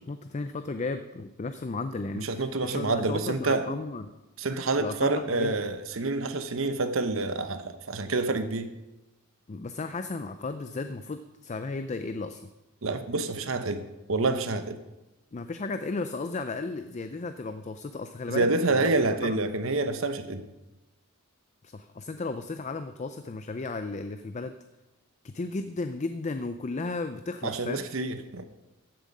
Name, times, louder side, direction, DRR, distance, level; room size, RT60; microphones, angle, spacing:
voice 1, 0.0-4.1 4.8-5.5 9.5-12.4 15.3-18.9 19.2-19.3 21.7-24.5 25.2-27.8, left 3 dB, 35° left, 9 dB, 0.4 m, -34 dB
voice 2, 2.1-3.7 4.4-8.7 12.8-14.8 18.3-20.4 27.4-28.4, right 3 dB, 65° right, 10 dB, 0.9 m, -28 dB
14.5 x 7.4 x 5.4 m, 1.0 s
head